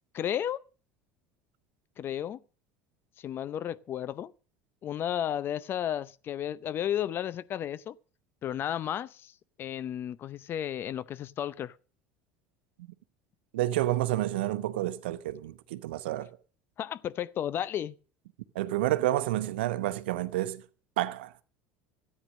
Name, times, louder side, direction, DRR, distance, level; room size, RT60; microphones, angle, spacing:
voice 1, 0.1-0.6 2.0-2.4 3.2-4.3 4.8-7.9 8.4-9.3 9.6-11.7 16.8-17.9, left 10 dB, 45° left, 0.6 m, -33 dB
voice 2, 13.5-16.4 18.5-20.6 21.0-21.3, right 15 dB, 85° right, 0.9 m, -29 dB
13.5 x 9.3 x 6.4 m
supercardioid pair, 95°, 6 cm